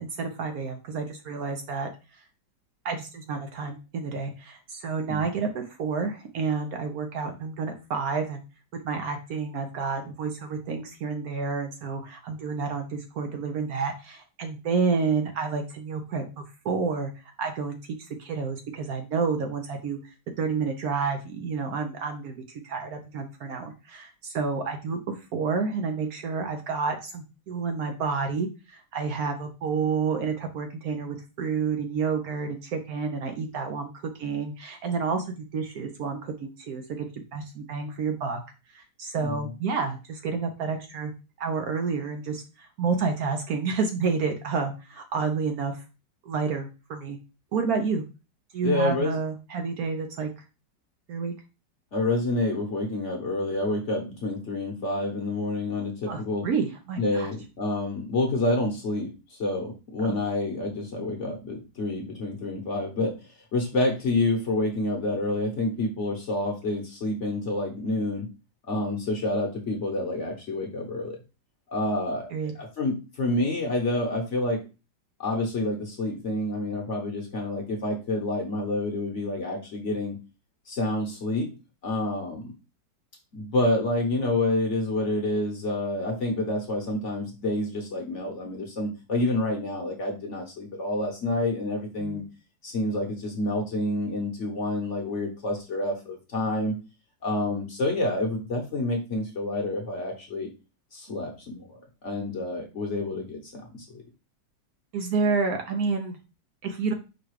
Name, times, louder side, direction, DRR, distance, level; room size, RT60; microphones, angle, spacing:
voice 1, 0.0-1.9 2.8-8.4 8.8-16.2 16.6-17.8 18.2-33.9 34.2-38.4 38.7-41.1 41.4-45.8 46.2-47.2 47.5-48.0 48.5-50.3 51.1-51.3 56.1-57.3 60.0-60.1 72.3-72.5 92.0-92.3 104.9-106.2 106.6-106.9, right 5 dB, 65° right, 5 dB, 1.0 m, -29 dB
voice 2, 48.6-49.1 51.9-56.4 57.0-63.1 63.5-68.3 68.7-71.2 71.7-72.3 72.8-74.6 75.2-80.2 80.7-81.5 81.8-82.5 83.3-92.2 92.6-96.7 97.2-100.5 100.9-103.8, left 2 dB, 50° left, 1 dB, 1.1 m, -28 dB
4.9 x 2.3 x 4.6 m, 0.30 s
omnidirectional pair, 1.9 m